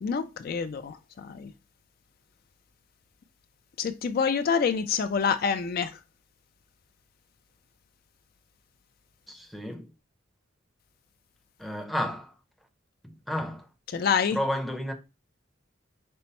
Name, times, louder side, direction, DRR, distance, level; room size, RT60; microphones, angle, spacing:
voice 1, 0.0-1.5 3.8-6.0 13.9-14.4, left 6 dB, 50° left, 0.3 m, -27 dB
voice 2, 9.3-9.9 11.6-12.3 13.0-13.7 14.3-14.9, left 1 dB, ahead, 0.6 m, -32 dB
5.4 x 2.0 x 4.1 m
head